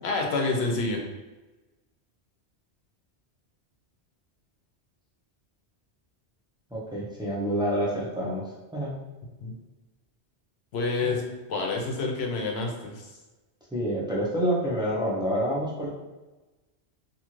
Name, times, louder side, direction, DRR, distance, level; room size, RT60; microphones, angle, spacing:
voice 1, 0.0-1.0 9.4-9.5 10.7-11.2 11.5-13.0, left 3 dB, 70° left, 1 dB, 0.8 m, -28 dB
voice 2, 6.7-8.4 8.7-8.9 11.0-11.2 13.7-15.9, equal, 5° right, -6 dB, 0.4 m, -27 dB
2.7 x 2.4 x 3.0 m, 1.1 s
omnidirectional pair, 1.1 m